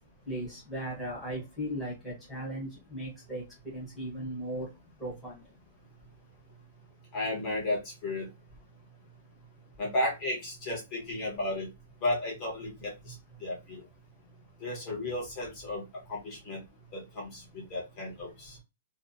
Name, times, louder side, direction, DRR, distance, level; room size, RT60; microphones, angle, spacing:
voice 1, 0.3-3.4 3.7-4.7 5.0-5.4, right 1 dB, ahead, -5 dB, 1.1 m, -37 dB
voice 2, 7.1-8.3 9.8-11.7 12.0-13.1 13.4-13.8 14.6-15.8 16.1-16.6 16.9-18.6, left 1 dB, 20° left, -3 dB, 1.1 m, -33 dB
2.8 x 2.3 x 2.2 m, 0.24 s
hypercardioid pair, 180°, 0 cm